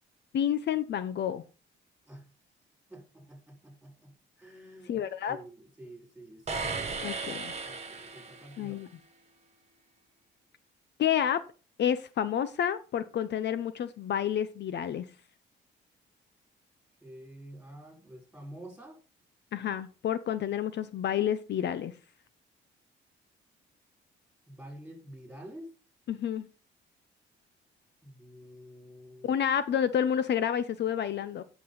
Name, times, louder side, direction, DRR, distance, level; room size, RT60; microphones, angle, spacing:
voice 1, 0.3-1.4 4.9-5.4 7.0-7.5 8.6-8.9 11.0-11.4 11.8-15.0 19.5-21.9 26.1-26.5 29.2-31.4, left 9 dB, 60° left, 0.7 m, -29 dB
voice 2, 2.9-7.1 7.6-8.9 17.0-19.0 24.5-25.7 28.0-29.4, right 1 dB, 5° right, 4.3 m, -49 dB
sound 1, 6.5-8.7, right 4 dB, 35° right, 1.6 m, -36 dB
10.5 x 6.2 x 3.9 m
cardioid pair, 90°, 20 cm